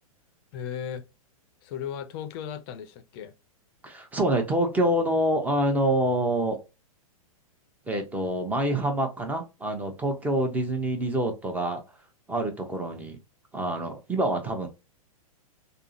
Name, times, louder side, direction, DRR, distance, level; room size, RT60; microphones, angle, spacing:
voice 1, 0.5-1.0 1.6-3.3, left 8 dB, 40° left, 0.6 m, -36 dB
voice 2, 3.8-6.6 7.9-11.8 12.3-13.2 13.5-14.7, right 1 dB, 10° right, 0.8 m, -26 dB
3.5 x 2.1 x 2.6 m
hypercardioid pair, 125°, 19 cm